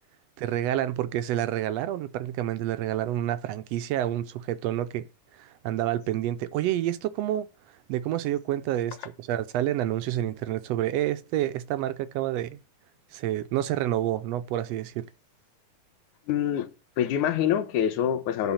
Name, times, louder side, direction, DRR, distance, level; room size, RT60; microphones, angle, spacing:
voice 1, 0.4-5.1 5.3-7.5 7.9-12.6 13.1-15.0, right 12 dB, 75° right, 1.6 m, -28 dB
voice 2, 16.3-16.7 17.0-18.5, left 10 dB, 85° left, 2.4 m, -25 dB
11.5 x 4.0 x 7.1 m
omnidirectional pair, 3.4 m